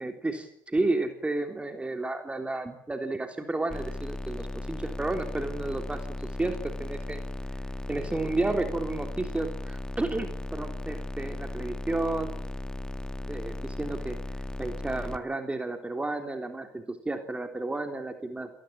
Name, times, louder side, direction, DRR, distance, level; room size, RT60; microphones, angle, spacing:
voice 1, 0.0-7.2 7.9-12.3 13.3-14.2 14.6-18.5, right 2 dB, 10° right, 6 dB, 3.5 m, -32 dB
sound 1, 3.7-15.2, left 2 dB, 5° left, 2.0 m, -36 dB
29.0 x 19.0 x 8.8 m, 0.64 s
hypercardioid pair, 80°, 10 cm